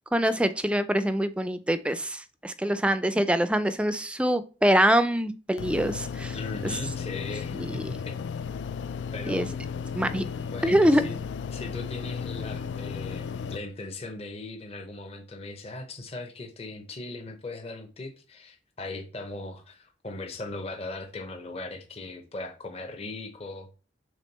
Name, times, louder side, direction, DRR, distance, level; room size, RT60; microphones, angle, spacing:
voice 1, 0.1-6.3 7.6-8.0 9.3-9.5 9.9-10.2 10.6-11.0, equal, 5° right, 0.4 m, -24 dB
sound 1, 5.6-13.6, left 6 dB, 75° left, 0.3 m, -34 dB
voice 2, 6.3-8.1 9.1-9.5 10.3-11.2 11.5-23.7, left 2 dB, 35° left, 0.9 m, -39 dB
6.3 x 3.6 x 4.1 m
head